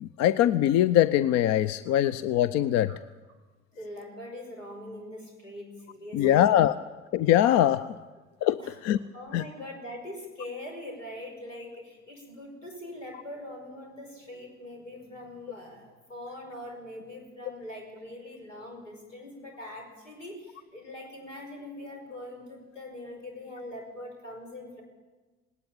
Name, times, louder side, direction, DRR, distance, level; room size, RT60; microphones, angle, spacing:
voice 1, 0.0-2.9 6.1-6.7 7.1-7.8 8.4-9.0 9.3-9.4, left 12 dB, 45° left, 17 dB, 0.7 m, -22 dB
voice 2, 3.7-6.7 8.6-8.8 9.1-24.8, left 1 dB, 80° left, 1 dB, 5.4 m, -42 dB
19.5 x 18.0 x 8.7 m, 1.2 s
figure-of-eight pair, 60°, 36 cm